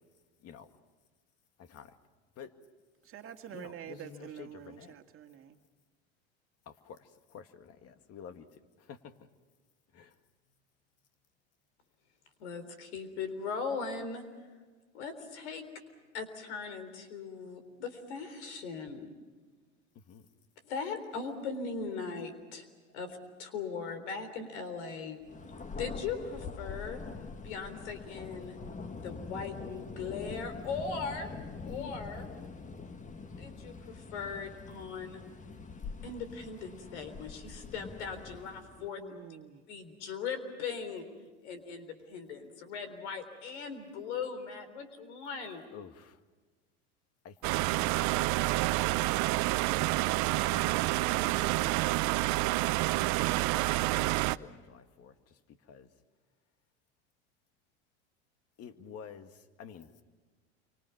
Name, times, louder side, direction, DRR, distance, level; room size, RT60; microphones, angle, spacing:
voice 1, 1.6-2.0 2.4-2.5 3.5-4.9 6.7-9.1 9.9-10.2 19.9-20.3 31.7-31.9 45.7-46.2 47.2-47.4 47.8-48.2 50.5-55.9 58.6-60.0, left 7 dB, 45° left, 2.0 m, -51 dB
voice 2, 3.0-5.5 38.8-39.6, right 10 dB, 40° right, 2.0 m, -47 dB
voice 3, 12.4-14.2 14.9-15.7 16.1-19.1 20.6-22.7 22.9-25.2 25.8-27.0 27.4-28.6 29.0-31.3 31.6-32.3 33.4-35.2 36.0-39.3 39.7-41.0 41.4-45.6, left 5 dB, 80° left, 3.9 m, -39 dB
Thunder, 25.2-38.9, left 4 dB, 20° left, 1.6 m, -44 dB
sound 1, 47.4-54.4, right 20 dB, 55° right, 0.7 m, -28 dB
28.0 x 25.0 x 5.9 m
hypercardioid pair, 90°, 34 cm